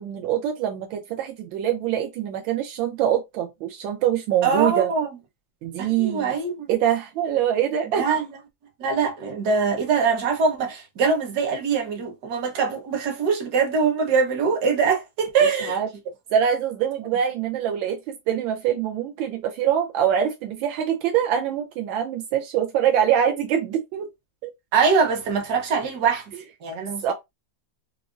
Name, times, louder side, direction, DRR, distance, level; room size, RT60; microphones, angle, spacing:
voice 1, 0.0-4.9 5.6-6.3 6.7-8.0 15.7-15.9 16.3-24.1 24.4-24.5 27.0-27.1, right 9 dB, 80° right, 1.4 m, -24 dB
voice 2, 4.4-5.1 5.8-6.7 7.9-8.3 8.8-15.8 24.7-26.3 26.6-27.1, right 5 dB, 60° right, 1.4 m, -23 dB
4.9 x 2.0 x 2.5 m
omnidirectional pair, 2.1 m